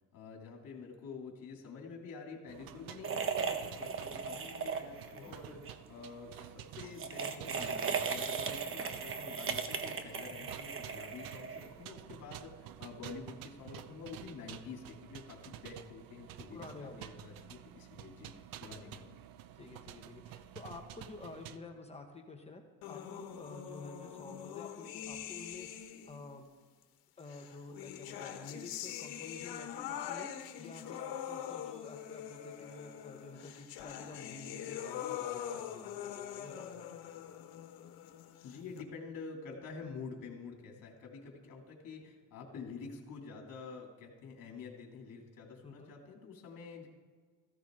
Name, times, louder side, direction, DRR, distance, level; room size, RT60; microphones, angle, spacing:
voice 1, 0.1-18.3 18.6-19.2 38.4-46.9, left 5 dB, 60° left, 1 dB, 2.8 m, -48 dB
sound 1, 2.5-21.6, right 11 dB, 75° right, 0.7 m, -50 dB
sound 2, 3.0-5.2 5.5-5.7 6.8-11.8, right 6 dB, 35° right, 1.1 m, -37 dB
voice 2, 16.5-17.1 19.5-26.5 27.2-30.3 30.6-37.4 45.6-45.9, left 3 dB, 15° left, 3 dB, 1.3 m, -50 dB
sound 3, 22.8-26.3 27.3-38.8, left 10 dB, 90° left, 1.3 m, -43 dB
15.0 x 15.0 x 3.8 m, 1.5 s
cardioid pair, 135°, 35 cm